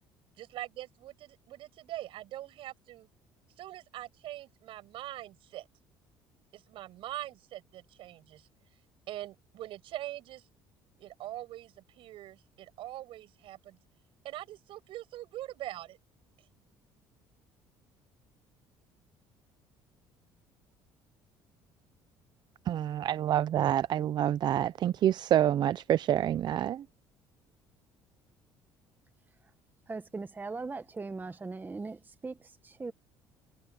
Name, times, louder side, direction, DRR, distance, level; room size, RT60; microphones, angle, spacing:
voice 1, 0.4-3.1 3.6-5.7 6.5-8.5 9.1-10.5 11.0-13.8 14.2-16.0 16.4-16.5, right 14 dB, 70° right, 7.8 m, -43 dB
voice 2, 22.7-26.8, right 11 dB, 50° right, 0.5 m, -27 dB
voice 3, 29.9-32.9, right 3 dB, 20° right, 1.1 m, -39 dB
supercardioid pair, 95°, 9 cm